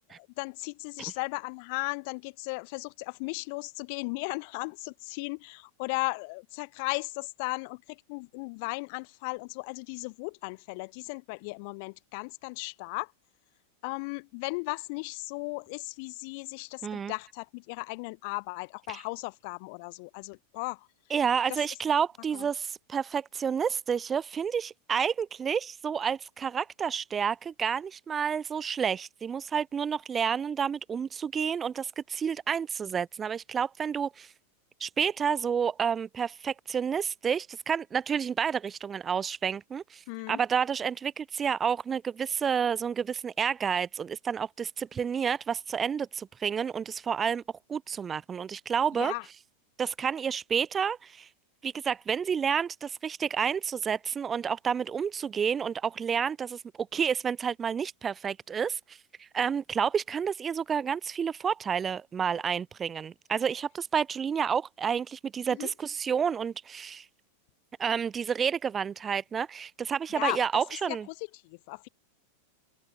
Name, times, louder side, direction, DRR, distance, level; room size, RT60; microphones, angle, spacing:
voice 1, 0.1-13.1 13.8-20.9 21.5-21.6 22.3-22.5 40.1-40.4 49.0-49.2 65.6-65.7 70.2-70.4 70.9-71.0 71.4-71.9, left 31 dB, 45° left, 0.7 m, -36 dB
voice 2, 16.8-17.1 18.9-19.0 21.1-34.3 34.8-47.4 47.7-49.1 49.8-51.3 51.6-56.6 56.9-67.1 67.8-71.1, right 7 dB, 20° right, 0.4 m, -30 dB
figure-of-eight pair, 90°, 0 cm